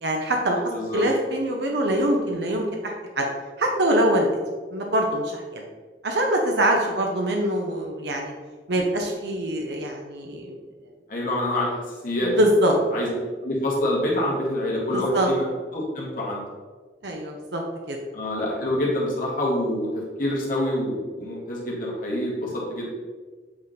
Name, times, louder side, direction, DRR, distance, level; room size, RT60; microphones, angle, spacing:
voice 1, 0.0-3.3 3.6-4.3 4.7-5.6 6.0-8.3 8.7-10.6 12.2-12.7 14.9-15.3 17.0-18.0, right 1 dB, 75° right, 1 dB, 0.8 m, -24 dB
voice 2, 0.7-1.0 11.1-12.3 12.9-13.1 13.4-15.4 15.7-16.4 18.1-22.9, left 1 dB, 50° left, -4 dB, 1.7 m, -26 dB
8.0 x 3.6 x 4.0 m, 1.4 s
head